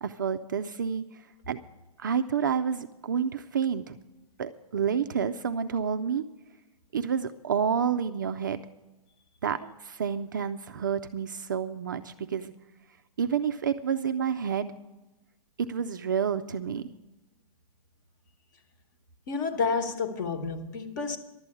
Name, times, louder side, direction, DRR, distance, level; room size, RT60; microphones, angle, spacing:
voice 1, 0.0-1.6 2.0-4.0 4.4-6.3 6.9-8.6 9.4-12.5 13.2-14.7 15.6-16.9, right 7 dB, 35° right, 0.4 m, -29 dB
voice 2, 19.3-21.2, left 4 dB, 30° left, 1.2 m, -30 dB
12.0 x 7.6 x 9.7 m
hypercardioid pair, 175°, 19 cm